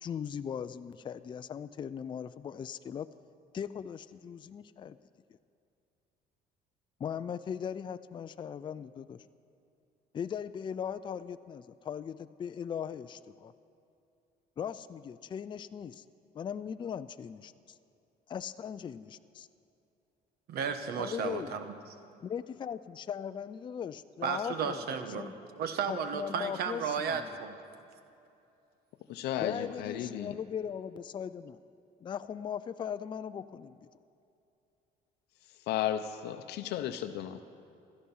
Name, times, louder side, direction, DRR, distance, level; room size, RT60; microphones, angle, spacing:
voice 1, 0.0-3.1 3.5-5.0 7.0-9.2 10.1-13.5 14.6-16.0 16.3-17.8 18.3-19.5 21.0-21.6 22.2-24.9 25.1-25.3 25.9-27.3 29.4-31.6 32.0-33.8, left 8 dB, 30° left, 12 dB, 0.4 m, -39 dB
voice 2, 20.5-21.7 24.2-27.6, right 6 dB, 70° right, 9 dB, 1.2 m, -34 dB
voice 3, 29.1-30.3 35.7-37.4, left 11 dB, 80° left, 8 dB, 0.6 m, -34 dB
16.0 x 12.5 x 5.5 m, 2.6 s
cardioid pair, 110°, 17 cm